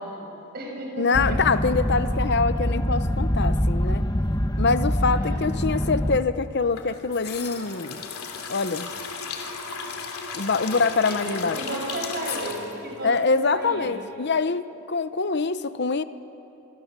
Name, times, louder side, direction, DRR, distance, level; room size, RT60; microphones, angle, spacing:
voice 1, 0.0-1.4 5.0-5.5 11.1-14.0, right 1 dB, 45° right, 0 dB, 6.1 m, -34 dB
voice 2, 1.0-4.0 4.6-8.0 8.5-8.9 10.3-11.6 13.0-16.0, left 4 dB, 50° left, 12 dB, 0.8 m, -24 dB
sound 1, 1.1-6.2, equal, 20° left, 1.2 m, -24 dB
sound 2, 6.7-13.8 14.0-14.1, left 5 dB, 90° left, 2.8 m, -35 dB
26.5 x 22.5 x 7.4 m, 2.9 s
head